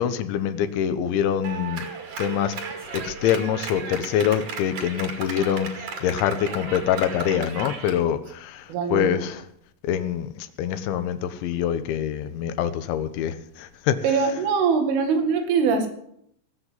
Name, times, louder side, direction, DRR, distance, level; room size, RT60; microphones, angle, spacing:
voice 1, 0.0-1.9 2.2-2.5 2.9-5.7 6.0-9.4 9.8-14.0, left 9 dB, 75° left, 11 dB, 3.1 m, -25 dB
Clapping, 1.4-8.0, right 5 dB, 50° right, 3.2 m, -35 dB
voice 2, 8.7-9.2 14.0-15.9, right 5 dB, 80° right, 5 dB, 4.5 m, -22 dB
18.5 x 7.6 x 8.2 m, 0.71 s
omnidirectional pair, 5.6 m